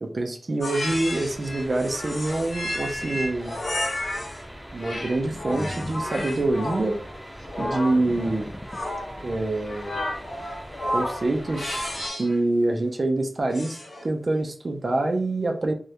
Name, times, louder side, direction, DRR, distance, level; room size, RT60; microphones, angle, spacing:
voice 1, 0.0-3.6 4.7-7.0 7.6-8.5 9.2-10.0 10.9-11.9 12.2-13.8 14.0-15.7, right 2 dB, 65° right, 4 dB, 0.4 m, -26 dB
sound 1, 0.6-4.4 4.8-12.4 13.5-14.1, left 1 dB, 90° left, 0.5 m, -32 dB
sound 2, 0.8-12.1, equal, 5° right, 0.8 m, -42 dB
sound 3, 2.9-3.3 3.7-4.0 4.5-9.4, equal, 25° left, 0.5 m, -40 dB
2.2 x 2.1 x 2.7 m, 0.43 s
wide cardioid pair, 55°, 0 cm